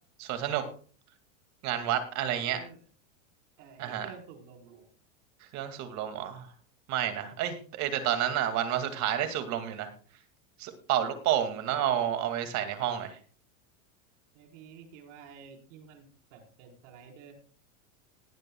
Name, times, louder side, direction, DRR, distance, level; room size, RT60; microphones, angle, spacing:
voice 1, 0.2-0.6 1.6-2.6 3.8-4.1 5.5-6.5 6.9-9.9 10.6-13.2, right 10 dB, 45° right, 8 dB, 2.2 m, -30 dB
voice 2, 2.3-2.8 3.6-4.9 14.3-17.3, right 6 dB, 65° right, 2 dB, 4.4 m, -51 dB
19.5 x 10.5 x 2.3 m, 0.41 s
supercardioid pair, 140°, 40 cm